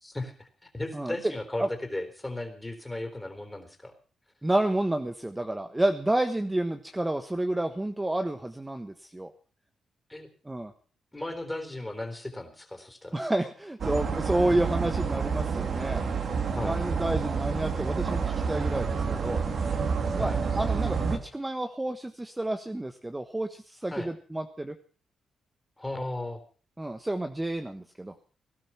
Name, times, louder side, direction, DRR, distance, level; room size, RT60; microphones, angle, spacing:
voice 1, 0.0-3.9 10.1-10.3 11.1-13.2 16.6-16.8 20.2-20.4 23.9-24.1 25.8-26.4, left 2 dB, 15° left, 7 dB, 3.8 m, -36 dB
voice 2, 4.4-9.3 10.4-10.7 13.1-16.1 16.6-19.4 20.1-24.7 26.8-28.1, right 1 dB, 15° right, 7 dB, 1.3 m, -30 dB
sound 1, 13.8-21.2, right 5 dB, 55° right, 2.7 m, -29 dB
18.5 x 12.0 x 5.8 m, 0.40 s
cardioid pair, 75°, 0 cm